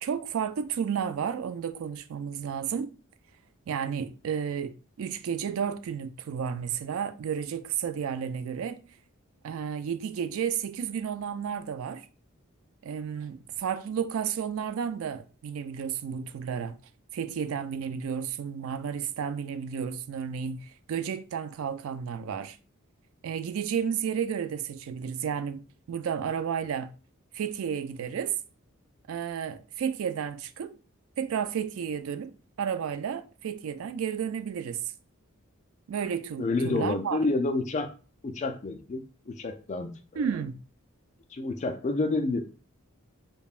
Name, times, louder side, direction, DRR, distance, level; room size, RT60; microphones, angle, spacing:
voice 1, 0.0-2.9 3.7-8.8 9.4-12.1 12.8-16.8 17.1-22.6 23.2-26.9 27.3-28.4 29.1-30.8 31.2-34.8 35.9-37.2 40.2-40.6, right 7 dB, 70° right, 0.3 m, -32 dB
voice 2, 36.4-37.9 38.2-39.9 41.3-42.4, left 3 dB, 35° left, 0.4 m, -29 dB
5.2 x 2.1 x 2.4 m
head